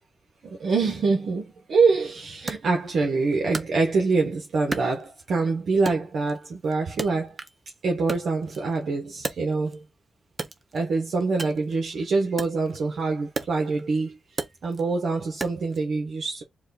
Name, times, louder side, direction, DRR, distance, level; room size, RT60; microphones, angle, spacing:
voice 1, 0.6-1.4 1.7-7.3 7.8-9.7 10.7-14.1 14.6-16.4, right 4 dB, 75° right, 1.2 m, -25 dB
Wood, 2.5-4.3 4.7-5.5 5.9-7.7 8.0-9.9 10.3-15.8, right 3 dB, 35° right, 0.8 m, -36 dB
4.7 x 2.5 x 4.0 m
cardioid pair, 105°, 0 cm